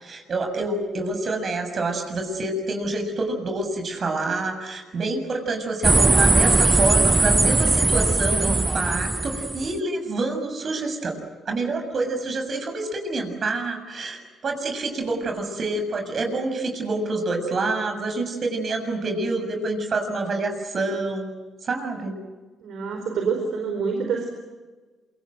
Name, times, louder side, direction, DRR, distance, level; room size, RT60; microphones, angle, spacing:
voice 1, 0.0-11.2 11.5-21.3 21.6-22.1, right 2 dB, 45° right, 5 dB, 7.0 m, -27 dB
sound 1, 5.8-9.7, right 2 dB, 20° right, 0.8 m, -19 dB
voice 2, 22.6-24.3, right 5 dB, 75° right, 3 dB, 4.5 m, -26 dB
27.5 x 24.5 x 8.0 m, 1.3 s
cardioid pair, 90°, 0 cm